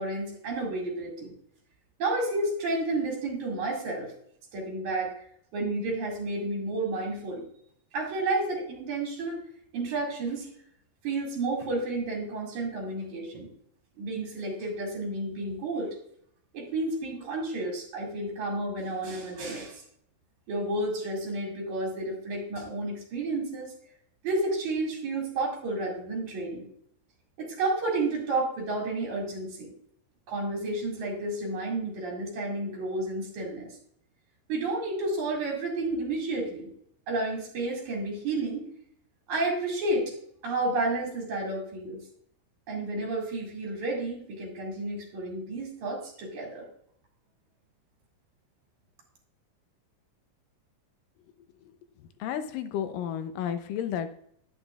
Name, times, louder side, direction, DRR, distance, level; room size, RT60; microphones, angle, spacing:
voice 1, 0.0-1.3 2.0-4.1 4.5-5.1 5.5-7.5 7.9-9.4 9.7-10.5 11.0-13.5 14.0-15.9 16.5-19.8 20.5-23.7 24.2-26.7 27.4-29.7 30.3-33.8 34.5-36.7 37.1-38.7 39.3-40.1 40.4-42.0 42.7-46.7, right 2 dB, 60° right, -1 dB, 3.5 m, -31 dB
voice 2, 52.0-54.2, left 9 dB, 85° left, 10 dB, 2.4 m, -32 dB
10.5 x 9.3 x 2.4 m, 0.67 s
omnidirectional pair, 3.8 m